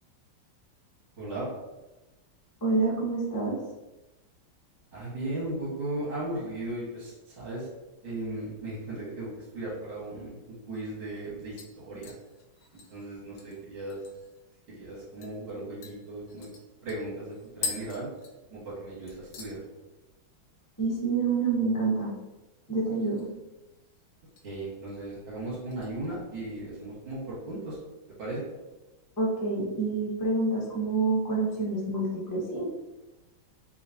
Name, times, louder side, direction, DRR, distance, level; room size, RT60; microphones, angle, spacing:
voice 1, 1.2-1.5 4.9-7.7 8.0-10.3 10.7-12.1 12.9-14.0 14.7-16.5 16.8-18.1 18.5-19.6 24.4-27.8 28.2-28.4, right 2 dB, 80° right, -9 dB, 2.5 m, -36 dB
voice 2, 2.6-3.5 20.8-22.1 22.7-23.3 29.2-32.7, right 3 dB, 20° left, -4 dB, 0.5 m, -27 dB
sound 1, 11.6-14.4 14.7-14.8 15.2-15.4 15.8-18.8 19.1-19.6 19.9-20.3 20.6-20.7 22.8-23.4 23.7-24.5 24.9-25.2 25.7-26.6 27.0-27.1, left 5 dB, 80° left, 1.5 m, -42 dB
5.7 x 2.9 x 2.8 m, 1.1 s
omnidirectional pair, 2.3 m